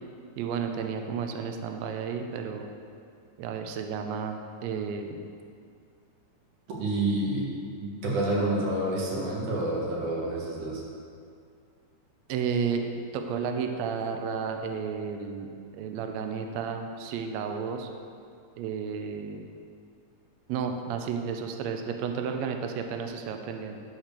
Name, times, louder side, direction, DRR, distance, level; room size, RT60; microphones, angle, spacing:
voice 1, 0.4-2.7 3.4-5.2 12.3-12.8 13.1-15.5 15.7-17.9 18.6-19.4 20.5-23.8, right 6 dB, 90° right, 5 dB, 1.5 m, -32 dB
voice 2, 6.8-10.8, right 1 dB, 65° right, -4 dB, 3.0 m, -28 dB
10.5 x 4.4 x 6.7 m, 2.3 s
omnidirectional pair, 3.9 m